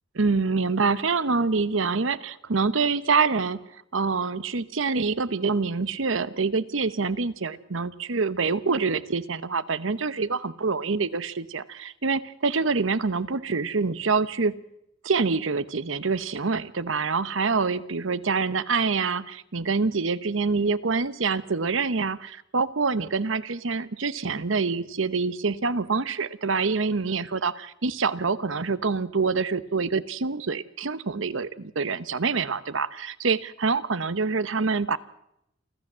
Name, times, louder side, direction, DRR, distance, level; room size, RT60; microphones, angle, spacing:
voice 1, 0.1-3.6 3.9-14.6 15.0-27.5 27.8-35.0, right 4 dB, 70° right, 16 dB, 0.9 m, -26 dB
28.0 x 13.5 x 7.4 m, 0.79 s
head